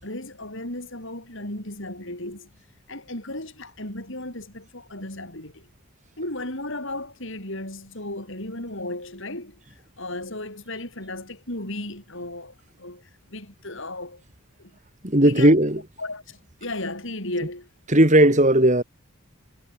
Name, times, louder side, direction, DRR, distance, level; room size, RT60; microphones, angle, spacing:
voice 1, 0.0-2.5 2.9-5.7 6.2-9.6 10.0-14.2 14.6-14.7 15.2-15.5 16.0-17.7, left 1 dB, 55° left, 6.6 m, -35 dB
voice 2, 15.0-15.8 17.9-18.8, right 1 dB, 30° right, 2.9 m, -16 dB
head